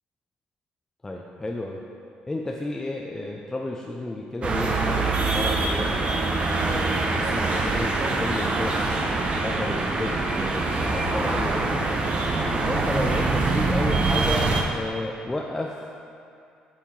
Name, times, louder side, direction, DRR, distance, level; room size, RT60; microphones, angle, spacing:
voice 1, 1.0-1.8 2.3-6.1 6.6-11.9 12.6-15.8, left 1 dB, 15° left, 0 dB, 0.5 m, -32 dB
sound 1, 4.4-14.6, right 3 dB, 40° right, 0.8 m, -24 dB
7.3 x 5.6 x 4.4 m, 2.4 s
cardioid pair, 95°, 3 cm